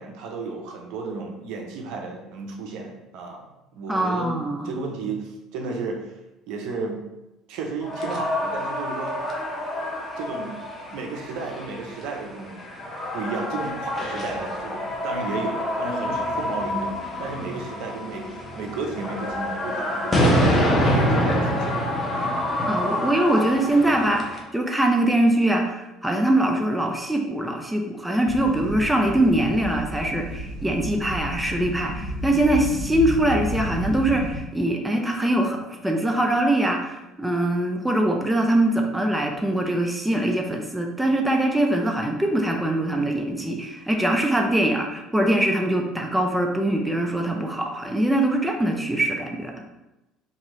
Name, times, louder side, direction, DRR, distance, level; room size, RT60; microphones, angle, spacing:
voice 1, 0.0-3.4 3.7-6.1 6.5-7.0 7.5-9.2 10.2-10.6 10.9-12.7 13.1-21.8 22.1-22.4 30.9-31.1, right 4 dB, 70° right, 2 dB, 0.5 m, -33 dB
voice 2, 3.9-4.7 22.7-49.5, right 1 dB, 5° right, 2 dB, 0.4 m, -23 dB
sound 1, 7.8-24.4, equal, 25° left, 0.7 m, -26 dB
sound 2, 28.3-34.4, left 1 dB, 70° left, 1.2 m, -32 dB
2.9 x 2.6 x 2.9 m, 0.97 s
supercardioid pair, 85°, 0 cm